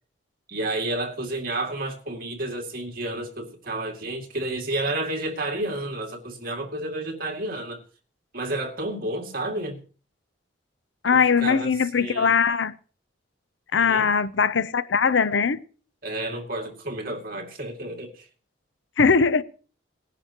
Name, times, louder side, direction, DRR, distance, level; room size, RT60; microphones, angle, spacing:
voice 1, 0.5-7.8 8.3-9.8 11.1-12.4 13.8-14.1 16.0-18.3, right 1 dB, 50° right, 2.4 m, -31 dB
voice 2, 11.0-12.7 13.7-15.6 19.0-19.4, left 5 dB, 75° left, 0.6 m, -20 dB
20.0 x 11.0 x 3.0 m
head